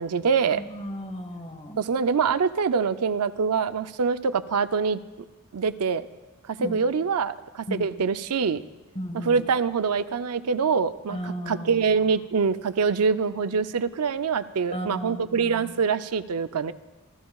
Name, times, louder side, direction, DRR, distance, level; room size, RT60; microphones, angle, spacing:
voice 1, 0.0-0.6 1.8-5.0 5.5-6.1 6.5-8.6 9.2-11.2 11.5-16.7, right 5 dB, 85° right, 11 dB, 0.5 m, -24 dB
voice 2, 0.5-1.8 6.6-6.8 7.7-7.9 8.9-9.4 11.1-12.1 14.7-15.7, equal, 30° left, 5 dB, 1.5 m, -35 dB
28.0 x 13.5 x 2.4 m, 1.1 s
head